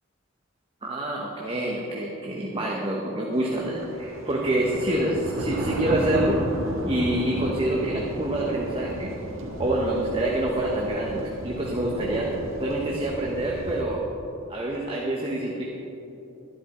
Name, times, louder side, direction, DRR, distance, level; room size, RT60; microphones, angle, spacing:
voice 1, 0.8-6.5 6.8-9.1 9.6-12.3 12.6-14.0 14.5-15.6, right 1 dB, 25° right, -2 dB, 1.1 m, -27 dB
sound 1, 3.5-13.8, right 1 dB, 70° right, 1.6 m, -33 dB
12.0 x 11.5 x 4.3 m, 3.0 s
head